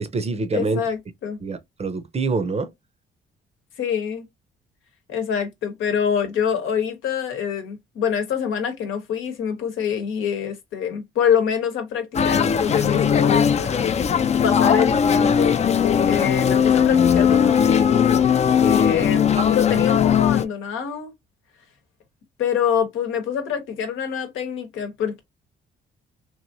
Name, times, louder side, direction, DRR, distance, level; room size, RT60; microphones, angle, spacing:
voice 1, 0.0-0.8 1.4-2.7 19.4-19.8, right 4 dB, 30° right, 0.6 m, -26 dB
voice 2, 0.5-1.4 3.8-4.2 5.1-13.9 14.4-15.5 16.1-18.3 18.6-21.1 22.4-25.2, left 8 dB, 85° left, 1.0 m, -25 dB
sound 1, 12.1-20.4, left 7 dB, 35° left, 0.4 m, -18 dB
3.1 x 2.5 x 2.6 m
cardioid pair, 90°, 20 cm